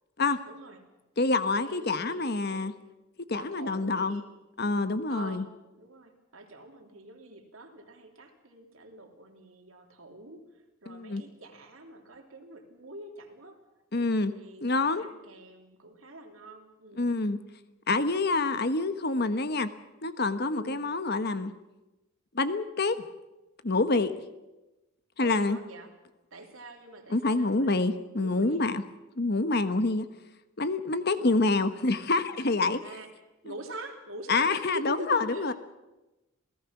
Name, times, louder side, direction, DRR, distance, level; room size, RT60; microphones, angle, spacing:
voice 1, 0.5-0.8 1.4-2.6 3.3-4.3 5.1-13.6 14.3-17.1 20.6-20.9 25.2-25.9 26.3-28.6 32.6-33.1 33.4-35.5, right 1 dB, 80° right, 3 dB, 3.5 m, -45 dB
voice 2, 1.2-2.7 3.3-4.2 4.6-5.4 10.9-11.2 13.9-14.3 14.6-15.0 17.0-17.4 17.9-19.7 20.0-21.5 22.3-23.0 23.6-24.1 25.2-25.6 27.1-28.8 29.2-30.1 30.6-32.8 34.3-35.5, left 3 dB, 50° left, 11 dB, 1.2 m, -27 dB
28.0 x 17.5 x 6.0 m, 1.0 s
head